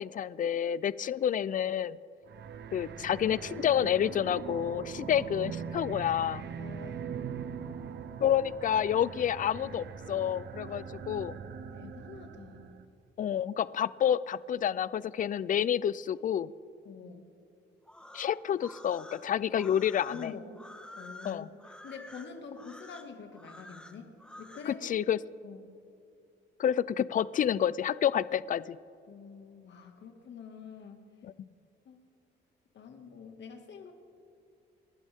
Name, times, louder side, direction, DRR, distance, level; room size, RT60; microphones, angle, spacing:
voice 1, 0.0-2.0 2.7-6.4 8.2-11.4 13.2-16.5 18.1-20.1 21.2-21.5 24.7-25.2 26.6-28.8, left 9 dB, 45° left, 19 dB, 0.4 m, -29 dB
sound 1, 2.3-12.8, right 7 dB, 60° right, 1.0 m, -41 dB
voice 2, 6.6-7.5 10.7-11.0 11.8-12.8 16.8-17.3 20.1-20.6 21.0-21.5 21.8-24.9 25.4-25.6 29.1-31.0 31.9-32.0 32.7-33.9, left 6 dB, 65° left, 4 dB, 2.1 m, -46 dB
sound 2, 17.8-24.7, left 1 dB, 5° left, 1.4 m, -50 dB
28.0 x 11.5 x 3.6 m, 2.6 s
cardioid pair, 90°, 20 cm